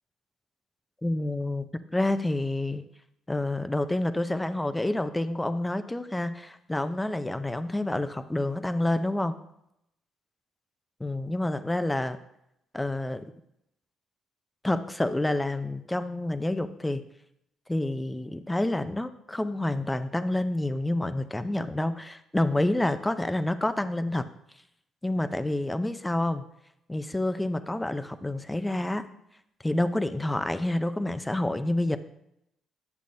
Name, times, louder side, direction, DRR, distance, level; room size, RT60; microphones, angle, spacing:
voice 1, 1.0-2.9 3.3-9.3 11.0-12.2 12.7-13.3 14.6-17.0 17.7-24.3 25.0-26.4 26.9-29.1 29.6-32.0, left 1 dB, 10° left, 11 dB, 0.5 m, -28 dB
10.5 x 6.9 x 2.6 m, 0.79 s
cardioid pair, 90°, 0 cm